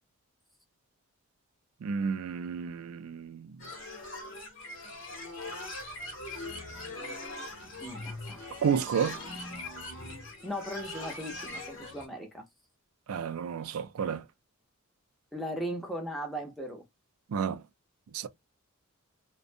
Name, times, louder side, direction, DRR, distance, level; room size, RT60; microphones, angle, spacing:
voice 1, 1.8-3.5 8.6-9.2 13.1-14.2 17.3-17.6 18.1-18.3, right 7 dB, 75° right, 0.4 m, -31 dB
sound 1, 3.6-12.1, left 2 dB, 55° left, 0.9 m, -41 dB
voice 2, 7.8-8.5 10.4-12.4 15.3-16.8, equal, ahead, 0.6 m, -38 dB
2.5 x 2.2 x 2.5 m
head